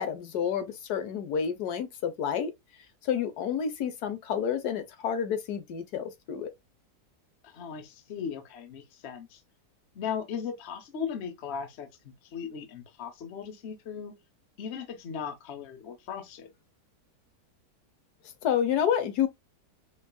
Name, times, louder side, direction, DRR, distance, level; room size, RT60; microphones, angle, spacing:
voice 1, 0.0-2.5 3.0-6.5 18.4-19.3, left 8 dB, 75° left, 1.2 m, -29 dB
voice 2, 7.4-9.4 9.9-14.1 14.6-16.5, left 7 dB, 50° left, 0.9 m, -37 dB
5.2 x 2.4 x 2.2 m
omnidirectional pair, 1.7 m